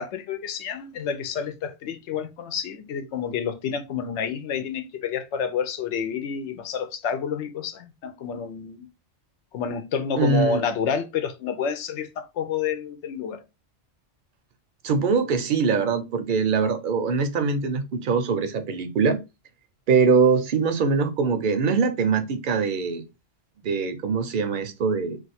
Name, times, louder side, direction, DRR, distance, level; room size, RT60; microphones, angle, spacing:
voice 1, 0.0-8.9 9.5-13.4, left 7 dB, 85° left, 0.9 m, -29 dB
voice 2, 10.2-10.6 14.8-19.2 19.9-23.0 23.6-25.2, right 5 dB, 55° right, 0.6 m, -22 dB
2.4 x 2.3 x 4.0 m
omnidirectional pair, 1.2 m